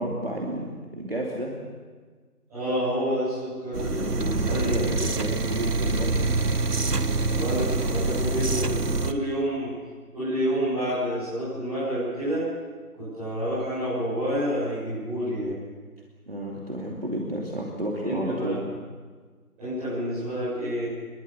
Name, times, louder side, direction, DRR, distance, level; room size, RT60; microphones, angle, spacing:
voice 1, 0.0-1.6 4.4-6.3 16.3-18.6, right 1 dB, 40° right, -2 dB, 2.8 m, -31 dB
voice 2, 2.5-4.9 7.3-9.7 10.1-12.4 12.9-15.5 18.0-18.6 19.6-20.8, equal, 5° right, -19 dB, 7.6 m, -28 dB
sound 1, 3.7-9.1, right 3 dB, 80° right, 1.5 m, -25 dB
24.0 x 22.0 x 7.2 m, 1.5 s
figure-of-eight pair, 175°, 46 cm